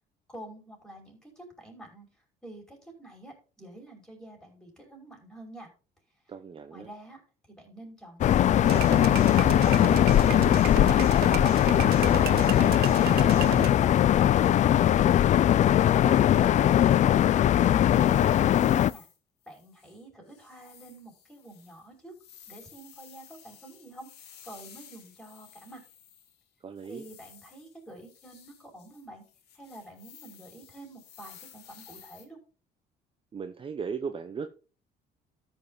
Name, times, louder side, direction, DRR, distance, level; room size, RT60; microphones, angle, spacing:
voice 1, 0.3-2.1 2.4-5.7 6.3-6.4 6.7-7.2 7.5-11.1 11.5-12.8 13.2-15.1 15.8-17.1 18.0-19.1 19.5-22.1 22.5-25.8 26.8-29.2 29.5-32.4, right 1 dB, 5° left, 5.3 m, -47 dB
voice 2, 6.3-6.9 18.1-18.8 26.6-27.0 33.3-34.5, right 6 dB, 30° right, 0.8 m, -38 dB
sound 1, 8.2-18.9, left 11 dB, 45° left, 0.4 m, -21 dB
sound 2, 8.6-13.7, right 15 dB, 70° right, 0.5 m, -34 dB
sound 3, 17.9-19.2 19.4-20.0 20.3-26.4 26.8-32.2, left 9 dB, 80° left, 2.2 m, -54 dB
13.5 x 5.5 x 3.9 m
cardioid pair, 110°, 17 cm